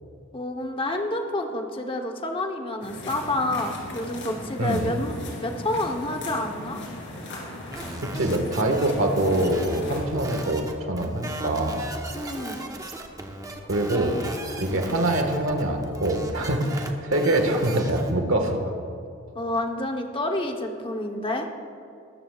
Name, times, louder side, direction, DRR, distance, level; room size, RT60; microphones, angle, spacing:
voice 1, 0.3-5.1 5.4-6.8 12.1-12.6 19.3-21.5, left 1 dB, 25° left, 3 dB, 1.0 m, -28 dB
sound 1, 2.8-10.0, left 1 dB, 65° left, 3.2 m, -38 dB
voice 2, 4.6-4.9 8.0-11.8 13.7-14.2 14.6-18.6, right 1 dB, 70° right, 4 dB, 1.6 m, -24 dB
sound 2, 7.7-18.1, right 1 dB, 20° right, 1.0 m, -37 dB
19.5 x 14.0 x 2.4 m, 2.5 s
head